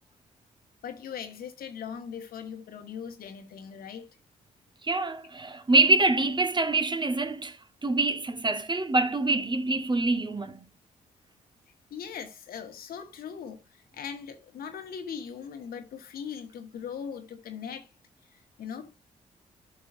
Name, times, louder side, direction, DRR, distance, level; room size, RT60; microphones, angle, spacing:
voice 1, 0.8-4.2 11.9-17.9 18.3-18.9, left 7 dB, 70° left, 1.5 m, -40 dB
voice 2, 4.8-10.6, right 3 dB, 30° right, 1.3 m, -25 dB
12.5 x 5.5 x 2.6 m
hypercardioid pair, 45°, 16 cm